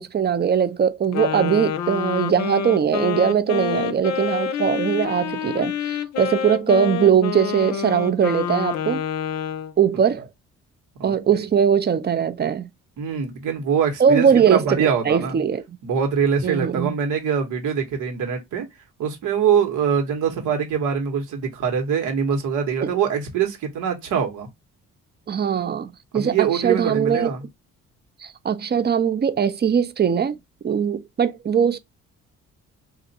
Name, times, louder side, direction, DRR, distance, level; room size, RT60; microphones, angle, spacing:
voice 1, 0.0-9.0 9.8-10.3 11.0-12.7 14.0-15.8 16.4-16.9 22.8-22.9 25.3-27.3 28.2-30.4 30.6-31.8, right 7 dB, 35° right, 0.5 m, -21 dB
Wind instrument woodwind instrument, 1.1-9.7, left 8 dB, 60° left, 0.6 m, -27 dB
voice 2, 11.0-11.4 13.0-15.4 15.8-18.7 19.0-24.5 26.1-27.4, right 7 dB, 80° right, 1.4 m, -23 dB
2.5 x 2.4 x 4.1 m
cardioid pair, 90°, 30 cm